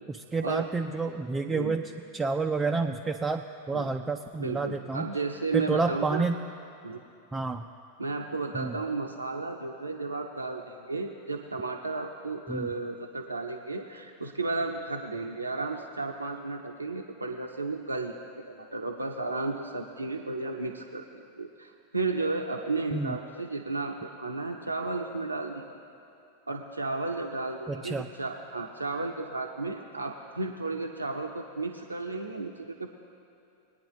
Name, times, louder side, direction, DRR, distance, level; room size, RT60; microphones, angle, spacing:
voice 1, 0.1-1.8 2.1-5.1 5.5-6.4 7.3-7.6 8.5-8.7 12.5-12.7 22.9-23.2 27.7-28.1, right 4 dB, 15° right, 4 dB, 0.4 m, -29 dB
voice 2, 4.4-6.3 6.8-7.0 8.0-21.1 21.3-25.7 26.5-32.9, right 3 dB, 85° right, 2 dB, 0.6 m, -33 dB
21.0 x 9.5 x 3.0 m, 2.7 s
figure-of-eight pair, 90°, 0 cm